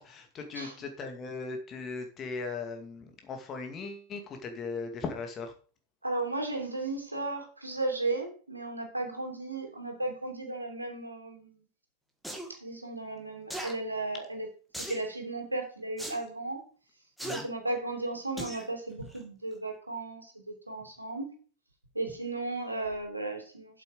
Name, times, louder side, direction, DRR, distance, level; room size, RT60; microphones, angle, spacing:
voice 1, 0.0-5.5 17.2-17.5, left 4 dB, 25° left, 5 dB, 2.3 m, -38 dB
voice 2, 6.0-11.6 12.5-14.5 14.9-16.6 17.3-21.3 21.9-23.8, right 2 dB, 85° right, 2 dB, 2.8 m, -35 dB
sound 1, 12.2-12.5 13.5-13.7 14.7-15.1 16.0-16.2 17.2-17.4 18.4-18.6 19.1-19.2, right 1 dB, ahead, 2.2 m, -37 dB
8.4 x 7.7 x 5.2 m, 0.39 s
figure-of-eight pair, 90°, 0 cm